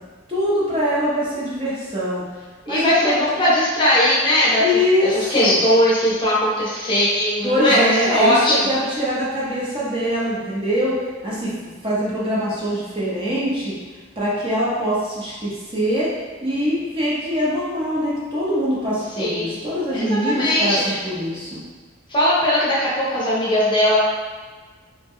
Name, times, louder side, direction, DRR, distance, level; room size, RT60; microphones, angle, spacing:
voice 1, 0.3-2.2 2.7-3.2 4.6-5.6 7.4-11.0 11.2-13.7 14.2-16.1 16.4-21.6, equal, 25° right, -8 dB, 0.8 m, -23 dB
voice 2, 2.7-8.7 19.2-19.6 19.9-21.0 22.1-24.1, left 1 dB, 25° left, -7 dB, 0.7 m, -19 dB
3.0 x 2.2 x 3.6 m, 1.4 s
head